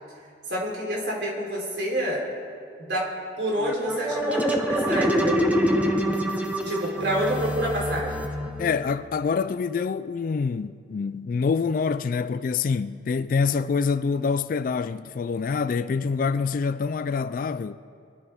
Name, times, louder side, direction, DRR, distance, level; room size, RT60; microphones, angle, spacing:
voice 1, 0.5-2.3 2.8-3.1 3.4-5.4 6.6-8.2, right 1 dB, 70° right, 3.9 m, -28 dB
sound 1, 3.6-9.0, equal, 10° right, 1.0 m, -25 dB
voice 2, 8.6-17.8, left 5 dB, 50° left, 0.3 m, -26 dB
24.0 x 13.0 x 3.6 m
head